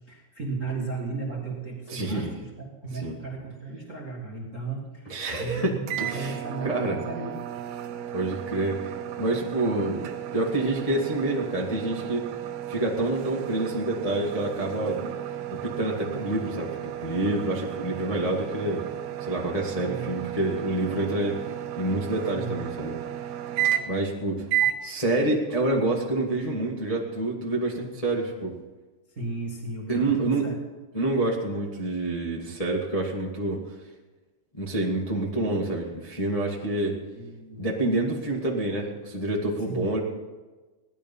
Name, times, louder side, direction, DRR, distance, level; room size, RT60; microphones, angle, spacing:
voice 1, 0.1-2.5 2.8-7.6 19.8-20.3 22.3-23.1 24.6-24.7 29.1-30.5 37.2-37.7 39.7-39.9, right 3 dB, 40° right, -2 dB, 1.1 m, -35 dB
voice 2, 1.9-2.3 2.9-3.2 5.0-5.7 6.0-6.4 6.6-6.9 8.1-10.1 10.3-12.2 12.7-15.0 15.5-18.8 19.2-21.4 21.7-22.9 23.9-24.4 24.8-28.5 29.9-30.5 30.9-33.6 34.5-36.9 37.6-40.0, right 2 dB, 30° left, -3 dB, 0.6 m, -27 dB
sound 1, 5.9-24.1 24.5-24.8, right 11 dB, 85° right, 2.9 m, -33 dB
17.5 x 11.0 x 5.6 m, 1.3 s
omnidirectional pair, 4.5 m